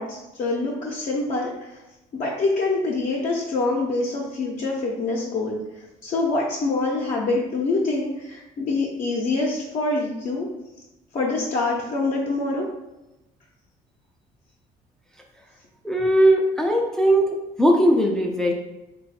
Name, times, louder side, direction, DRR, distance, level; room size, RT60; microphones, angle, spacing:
voice 1, 0.0-1.8 2.1-5.6 6.0-10.5 11.1-12.7, left 3 dB, 45° left, -3 dB, 0.6 m, -25 dB
voice 2, 15.8-17.3 17.6-18.5, right 1 dB, 5° left, 0 dB, 0.4 m, -19 dB
3.0 x 2.3 x 4.1 m, 0.96 s
cardioid pair, 110°, 17 cm